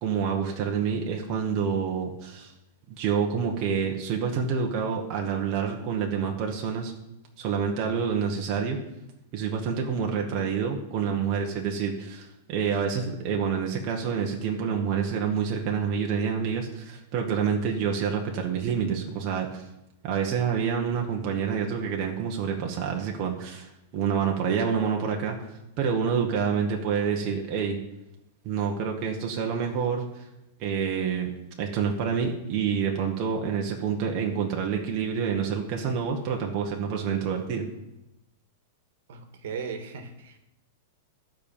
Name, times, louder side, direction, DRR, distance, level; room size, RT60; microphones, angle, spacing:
voice 1, 0.0-2.5 3.0-6.9 7.4-8.8 9.3-19.6 20.0-27.8 28.4-30.2 30.6-31.3 31.6-37.7, right 6 dB, 25° right, 0 dB, 1.1 m, -28 dB
voice 2, 10.1-10.5 27.1-27.3 39.1-40.4, right 5 dB, 60° right, 6 dB, 1.5 m, -38 dB
13.5 x 5.1 x 7.1 m, 0.90 s
supercardioid pair, 175°, 0 cm